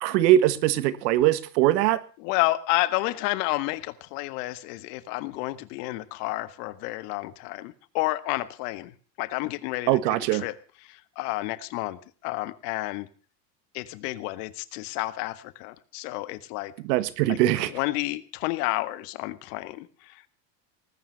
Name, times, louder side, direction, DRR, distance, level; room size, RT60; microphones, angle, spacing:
voice 1, 0.0-2.0 9.9-10.4 16.8-17.7, right 13 dB, 75° right, 15 dB, 1.7 m, -21 dB
voice 2, 2.2-10.0 10.3-10.6 10.8-13.1 13.7-16.7 17.3-17.4 17.7-20.3, left 19 dB, 65° left, 14 dB, 1.7 m, -30 dB
19.5 x 9.5 x 6.7 m, 0.39 s
supercardioid pair, 105°, 50 cm